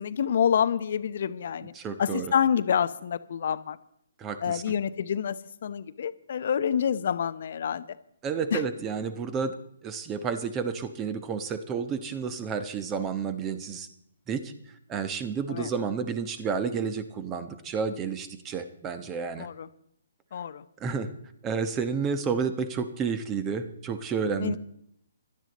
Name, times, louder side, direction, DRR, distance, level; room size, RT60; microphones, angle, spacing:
voice 1, 0.0-1.7 2.0-3.8 4.4-7.9 8.5-8.6 15.5-15.7 19.4-19.7 20.3-20.6 24.4-24.6, left 8 dB, 55° left, 12 dB, 0.8 m, -27 dB
voice 2, 1.7-2.3 4.2-4.6 8.2-9.5 9.8-13.9 14.3-14.5 14.9-19.5 20.8-21.1 21.4-24.6, right 6 dB, 20° right, 11 dB, 1.2 m, -31 dB
17.0 x 12.0 x 4.2 m, 0.72 s
figure-of-eight pair, 135°, 0 cm